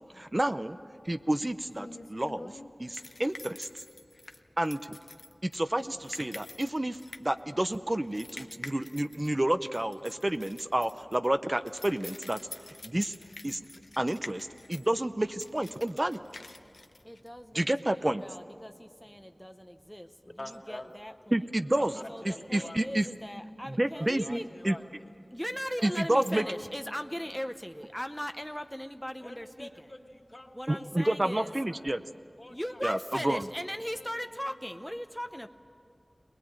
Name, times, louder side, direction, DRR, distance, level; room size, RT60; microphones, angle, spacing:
voice 1, 0.2-0.8 1.1-3.7 4.6-5.0 5.4-12.4 12.8-13.1 13.4-13.6 14.0-16.2 17.5-18.2 21.3-22.0 22.2-23.1 23.7-24.4 24.6-24.8 25.8-26.4 30.7-32.0 32.8-33.4, right 1 dB, 30° right, 10 dB, 0.6 m, -29 dB
sound 1, 1.0-17.7, left 2 dB, 70° left, 0.8 m, -48 dB
voice 2, 17.0-17.6 17.9-20.1 20.5-21.4 22.1-24.5 25.3-29.8 30.5-31.5 32.5-35.5, equal, 5° left, 7 dB, 0.8 m, -38 dB
voice 3, 20.2-20.9 21.9-23.1 23.9-24.8 25.8-25.9 26.3-26.6 29.2-30.9 31.2-31.4 31.7-31.8 32.4-32.8 33.3-33.4 33.9-34.8, left 1 dB, 35° left, 3 dB, 2.2 m, -47 dB
21.0 x 20.5 x 8.9 m, 2.3 s
wide cardioid pair, 55°, 0 cm